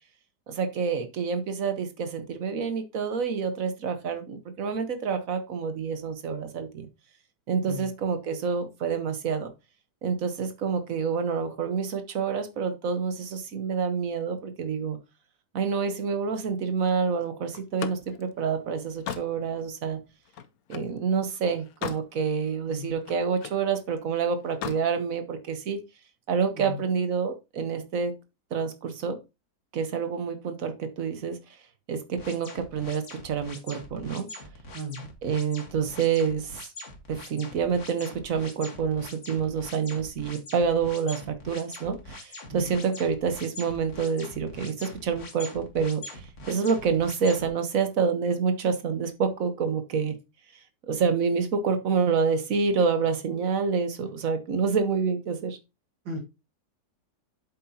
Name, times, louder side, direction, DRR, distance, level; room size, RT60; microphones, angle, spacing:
voice 1, 0.5-6.9 7.5-9.5 10.0-15.0 15.5-20.0 20.7-25.8 26.3-28.1 28.5-29.2 29.7-31.4 31.9-34.3 35.2-36.6 37.1-46.2 46.5-50.2 50.9-55.6, right 5 dB, 55° right, 8 dB, 1.4 m, -27 dB
Slam, 17.5-21.0 21.4-22.1 22.5-23.7 24.4-24.9, left 9 dB, 65° left, 1.0 m, -38 dB
sound 1, 32.2-47.5, left 2 dB, 45° left, 1.9 m, -43 dB
voice 2, 34.7-35.1 42.5-42.7 56.1-56.2, equal, 90° right, 1 dB, 2.5 m, -36 dB
8.1 x 7.9 x 2.8 m, 0.26 s
omnidirectional pair, 1.9 m